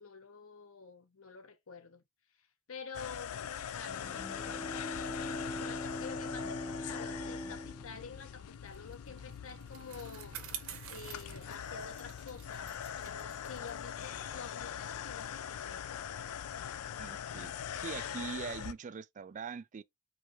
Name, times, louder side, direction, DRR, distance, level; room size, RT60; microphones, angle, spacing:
voice 1, 0.0-2.0 2.7-10.4 10.9-15.9, left 5 dB, 65° left, 0.9 m, -49 dB
sound 1, 2.9-18.7, left 9 dB, 90° left, 0.4 m, -42 dB
Bowed string instrument, 3.9-8.8, equal, 20° left, 0.6 m, -42 dB
Bicycle, 8.7-15.5, right 8 dB, 70° right, 1.0 m, -50 dB
voice 2, 17.0-19.8, right 6 dB, 35° right, 0.3 m, -42 dB
4.8 x 3.2 x 2.9 m
head